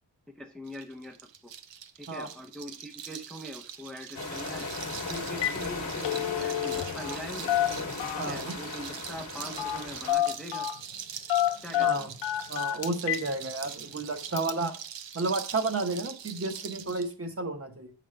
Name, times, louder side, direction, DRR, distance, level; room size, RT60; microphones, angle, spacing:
voice 1, 0.3-1.5 2.0-4.7 5.0-7.6 8.3-10.7 11.6-12.1, left 1 dB, ahead, 5 dB, 0.5 m, -42 dB
sound 1, 0.7-17.1, right 9 dB, 85° right, 0.7 m, -43 dB
sound 2, 4.1-10.1, left 3 dB, 40° left, 1.2 m, -37 dB
Telephone, 4.8-5.0 5.3-5.6 5.9-7.2 7.5-8.4 9.6-9.8 10.1-10.8 11.3-13.3 13.7-13.8 14.4-14.5, left 12 dB, 85° left, 0.5 m, -28 dB
voice 2, 8.2-8.6 11.8-12.1 12.5-14.7 15.1-17.9, right 3 dB, 30° right, 7 dB, 0.9 m, -32 dB
7.8 x 5.1 x 3.2 m, 0.42 s
wide cardioid pair, 130°, 43 cm